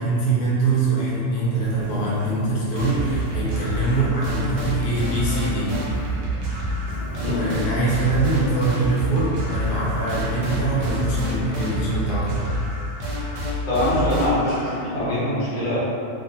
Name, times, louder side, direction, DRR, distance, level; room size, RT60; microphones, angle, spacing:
voice 1, 0.0-5.7 7.2-12.4, right 3 dB, 75° left, -7 dB, 1.1 m, -23 dB
sound 1, 1.6-12.8, right 1 dB, 25° right, 1.1 m, -37 dB
sound 2, 2.8-14.8, equal, 55° right, 0.8 m, -28 dB
voice 2, 13.7-15.8, left 1 dB, 40° left, -10 dB, 0.7 m, -23 dB
2.5 x 2.4 x 2.8 m, 2.5 s
omnidirectional pair, 1.7 m